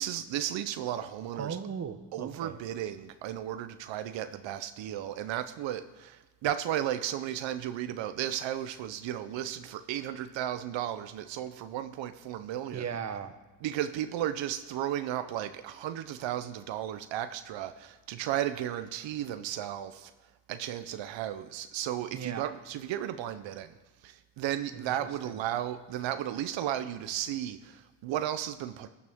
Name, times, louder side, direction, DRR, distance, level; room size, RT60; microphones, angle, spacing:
voice 1, 0.0-1.6 2.1-12.8 13.6-20.1 20.5-23.7 24.0-28.9, right 11 dB, 80° right, 10 dB, 0.7 m, -34 dB
voice 2, 1.3-2.6 12.7-13.3 22.1-22.4 24.7-24.9 25.2-25.3, right 7 dB, 35° right, 9 dB, 1.0 m, -37 dB
15.0 x 9.4 x 3.6 m, 1.2 s
cardioid pair, 95°, 44 cm